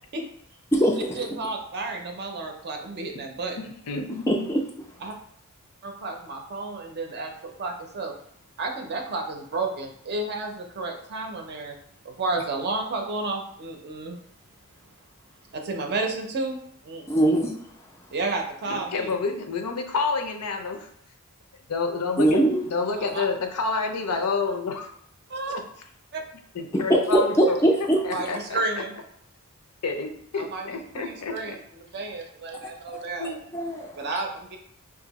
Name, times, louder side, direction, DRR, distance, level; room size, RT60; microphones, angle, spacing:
voice 1, 1.2-3.6 5.0-5.1 5.8-8.1 8.6-11.8 12.0-14.2 15.5-16.6 16.8-17.3 18.1-19.1 23.0-23.2 25.3-25.6 26.1-26.2 28.1-28.9 30.4-30.6 30.9-31.6 31.9-33.3 34.0-34.6, right 3 dB, 50° right, 3 dB, 0.5 m, -31 dB
voice 2, 3.6-4.5 18.7-20.9 21.7-22.4 22.7-24.9 25.5-25.6 26.5-27.6 28.0-28.8 29.8-31.6 33.2-33.4, left 4 dB, 85° left, 5 dB, 0.5 m, -29 dB
voice 3, 4.3-4.7 17.1-17.6 22.2-22.6 26.7-28.1 32.9-33.0 33.5-34.1, right 1 dB, 10° left, -1 dB, 0.3 m, -21 dB
2.7 x 2.5 x 3.9 m, 0.68 s
head